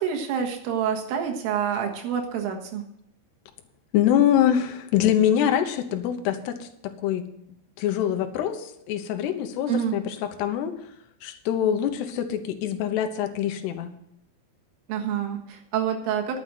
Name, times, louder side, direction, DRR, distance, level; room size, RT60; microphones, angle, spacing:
voice 1, 0.0-2.8 9.7-10.0 14.9-16.4, right 8 dB, 85° right, 2 dB, 4.1 m, -27 dB
voice 2, 3.9-7.3 7.8-10.7 11.2-13.9, left 10 dB, 70° left, 7 dB, 2.8 m, -24 dB
12.0 x 7.7 x 7.6 m, 0.78 s
omnidirectional pair, 5.6 m